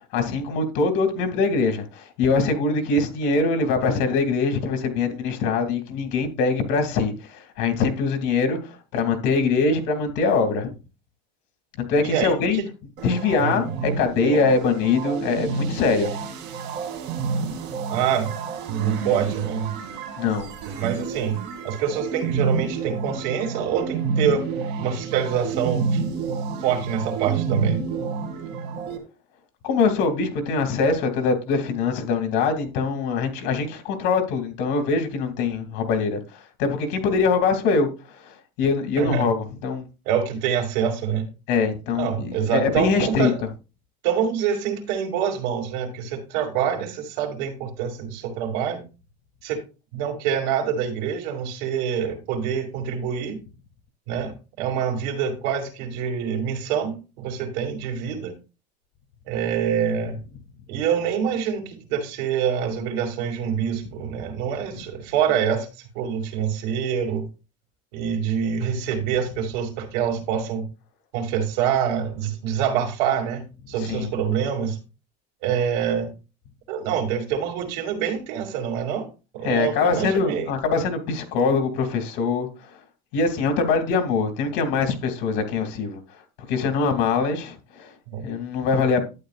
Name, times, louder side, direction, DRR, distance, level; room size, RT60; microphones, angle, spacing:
voice 1, 0.1-10.7 11.8-12.6 13.0-16.1 20.2-20.5 29.6-36.2 36.6-37.9 38.2-39.9 41.5-43.3 73.8-74.1 79.4-82.5 83.1-86.0 86.5-87.9 88.2-89.0, left 4 dB, 65° left, 2.3 m, -23 dB
voice 2, 12.0-12.7 13.4-13.7 17.9-18.3 18.7-19.7 20.8-21.4 21.6-24.5 24.8-26.0 26.6-27.8 39.0-39.3 40.1-41.3 41.9-43.4 44.0-48.9 49.4-49.6 49.9-53.4 54.1-58.4 59.3-60.2 60.7-65.7 65.9-67.3 67.9-70.7 71.1-74.8 75.4-76.1 76.7-79.1 79.3-80.5 88.1-88.2, right 8 dB, 85° right, 2.5 m, -26 dB
sound 1, 13.0-29.0, right 5 dB, 55° right, 2.3 m, -29 dB
11.5 x 9.1 x 2.4 m
cardioid pair, 145°, 21 cm